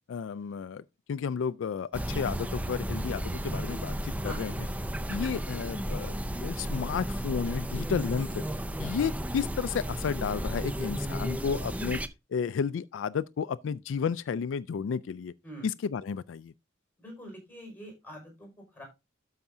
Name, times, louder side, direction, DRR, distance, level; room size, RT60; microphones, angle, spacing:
voice 1, 0.1-4.5 5.1-8.4 8.8-12.0 12.3-15.3 15.6-16.5, left 6 dB, 75° left, 0.3 m, -32 dB
sound 1, 1.9-12.1, equal, 10° right, 0.5 m, -33 dB
voice 2, 4.2-4.5 8.7-8.9 15.4-15.7 17.0-18.8, equal, 10° left, 5.5 m, -45 dB
12.5 x 5.8 x 2.7 m
head